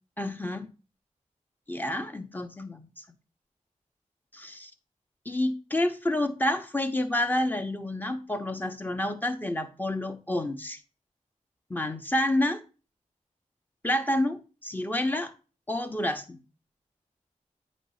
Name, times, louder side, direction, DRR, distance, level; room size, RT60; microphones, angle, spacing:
voice 1, 0.2-0.7 1.7-3.0 4.3-4.7 5.2-10.8 11.7-12.6 13.8-15.3 15.7-16.4, left 1 dB, 15° left, 0.9 m, -29 dB
9.0 x 3.1 x 5.6 m
wide cardioid pair, 65°, 14 cm